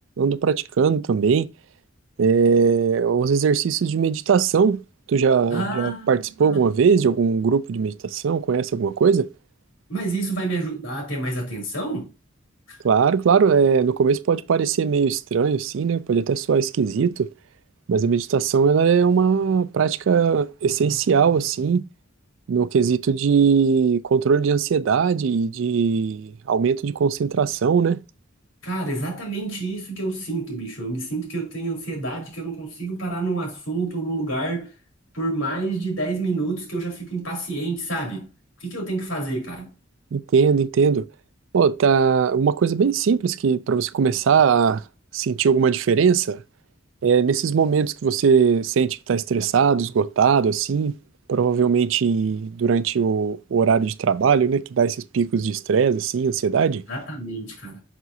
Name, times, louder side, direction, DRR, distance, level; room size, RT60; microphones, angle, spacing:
voice 1, 0.2-1.5 2.2-4.8 5.1-9.3 12.8-17.3 17.9-21.8 22.5-28.0 40.1-41.1 41.5-44.8 45.1-46.4 47.0-51.0 51.3-56.8, right 6 dB, 70° right, 0.4 m, -20 dB
voice 2, 5.5-6.6 9.9-12.1 12.7-12.8 28.6-34.7 35.1-38.3 38.6-39.7 56.9-57.8, right 2 dB, 75° left, 3.5 m, -28 dB
6.1 x 5.8 x 2.7 m
head